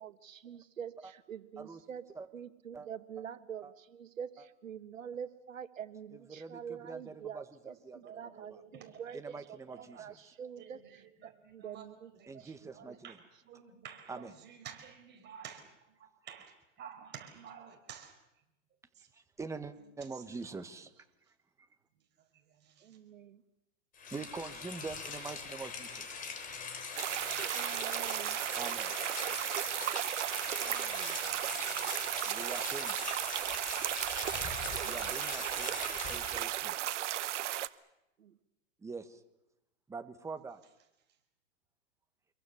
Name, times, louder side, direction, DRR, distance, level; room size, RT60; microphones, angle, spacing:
voice 1, 0.0-2.0 2.3-12.1 12.4-12.7 22.8-23.4 27.5-28.4 30.6-31.2 34.6-34.9 38.2-38.4, right 8 dB, 90° right, 11 dB, 1.8 m, -46 dB
voice 2, 6.1-8.6 9.1-10.3 12.3-13.2 14.1-14.3 19.1-20.9 24.1-26.3 28.6-28.9 32.2-33.0 34.8-36.7 38.8-39.2 39.9-40.6, right 4 dB, 10° right, 8 dB, 1.4 m, -45 dB
voice 3, 8.0-10.0 10.6-12.4 12.7-13.2 13.4-15.6 16.0-18.1 19.0-19.1 22.6-23.0 31.1-32.3 32.6-32.7, right 8 dB, 25° right, 3 dB, 5.0 m, -52 dB
Rain, 23.9-36.5, left 5 dB, 20° left, 3.3 m, -42 dB
sound 1, 27.0-37.7, right 13 dB, 65° right, 1.2 m, -35 dB
27.0 x 23.0 x 7.1 m, 0.90 s
hypercardioid pair, 130°, 38 cm